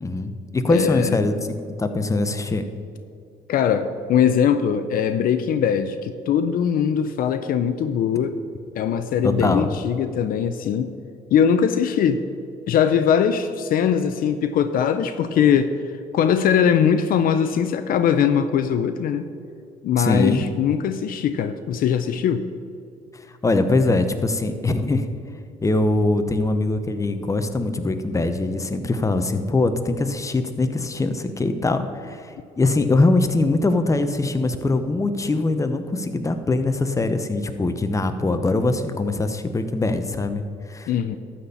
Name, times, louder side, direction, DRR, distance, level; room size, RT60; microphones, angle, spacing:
voice 1, 0.0-2.6 9.2-9.7 20.0-20.4 23.1-25.1 25.6-40.9, left 2 dB, 20° left, 8 dB, 0.9 m, -22 dB
voice 2, 0.7-1.2 3.5-8.4 8.8-10.9 11.3-12.2 12.7-19.3 19.8-22.5 40.9-41.2, left 8 dB, 65° left, 10 dB, 0.6 m, -21 dB
12.5 x 4.3 x 8.2 m, 2.4 s
supercardioid pair, 75°, 16 cm